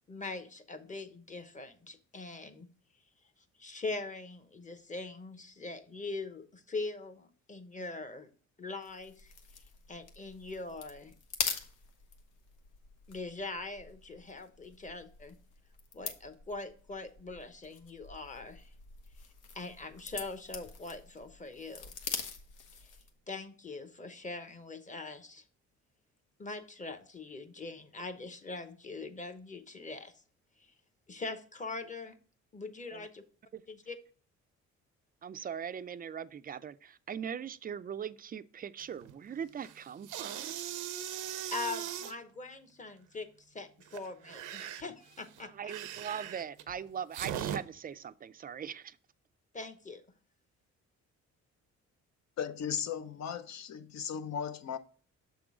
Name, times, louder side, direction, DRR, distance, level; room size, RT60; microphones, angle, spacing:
voice 1, 0.1-2.7 3.6-8.3 8.6-9.3 9.9-11.1 13.1-15.3 15.9-18.7 19.5-21.9 22.8-22.9 23.3-25.4 26.4-30.2 30.6-30.7 31.1-32.2 32.5-33.2 33.7-34.0 41.5-45.7 49.5-50.0, left 3 dB, 25° left, 0.9 m, -42 dB
sound 1, 8.8-23.2, left 6 dB, 80° left, 1.1 m, -44 dB
voice 2, 35.2-40.4 45.4-49.0, right 8 dB, 30° right, 0.4 m, -40 dB
sound 2, 38.8-39.1 39.5-42.1 43.8-47.6, right 10 dB, 85° right, 0.6 m, -40 dB
voice 3, 52.4-54.8, left 8 dB, 60° left, 0.7 m, -36 dB
7.0 x 3.8 x 4.8 m
cardioid pair, 90°, 30 cm